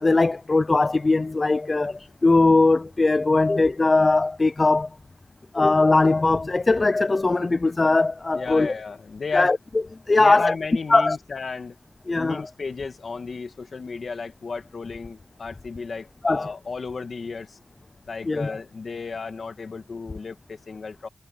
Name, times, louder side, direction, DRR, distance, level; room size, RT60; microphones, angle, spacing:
voice 1, 0.0-4.9 5.5-8.7 9.3-9.6 10.1-10.5 10.9-11.2 12.1-12.4 16.2-16.5 18.3-18.5, left 3 dB, 35° left, 0.3 m, -20 dB
voice 2, 8.3-9.5 10.2-11.8 12.1-17.6 18.1-21.1, left 4 dB, 60° left, 2.2 m, -33 dB
wide cardioid pair, 130°, 0 cm